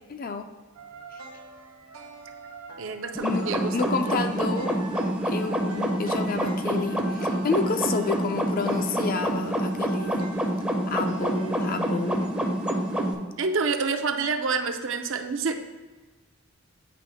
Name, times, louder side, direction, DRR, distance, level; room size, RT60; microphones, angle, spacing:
voice 1, 0.1-0.5 3.2-4.8 5.2-10.2 10.9-12.3, left 4 dB, 40° left, 7 dB, 0.4 m, -30 dB
sound 1, 0.7-13.1, right 4 dB, 85° right, 0.8 m, -44 dB
voice 2, 2.8-4.1 13.4-15.6, right 4 dB, 60° right, 5 dB, 0.5 m, -28 dB
sound 2, 3.1-13.1, right 1 dB, 5° right, 0.5 m, -27 dB
8.7 x 3.0 x 4.9 m, 1.3 s
head